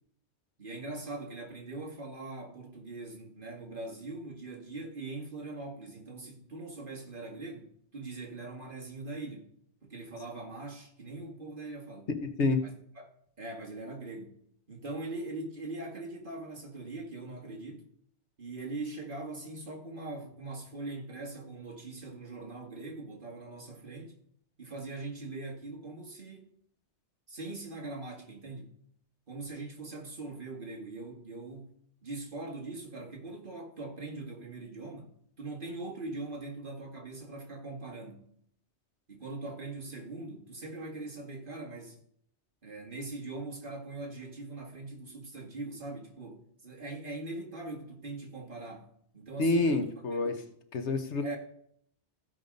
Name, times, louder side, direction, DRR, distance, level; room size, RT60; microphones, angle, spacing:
voice 1, 0.6-9.5 9.8-12.1 12.6-13.1 13.4-14.4 14.7-17.9 18.4-24.1 24.6-26.5 27.3-28.7 29.3-31.7 32.0-38.3 39.1-42.0 42.6-49.9 50.2-50.5 51.2-51.4, right 2 dB, 45° right, 2.1 m, -41 dB
voice 2, 12.2-12.6 49.4-50.3 50.7-51.4, left 3 dB, 70° left, 1.3 m, -28 dB
15.0 x 5.4 x 5.3 m
omnidirectional pair, 1.2 m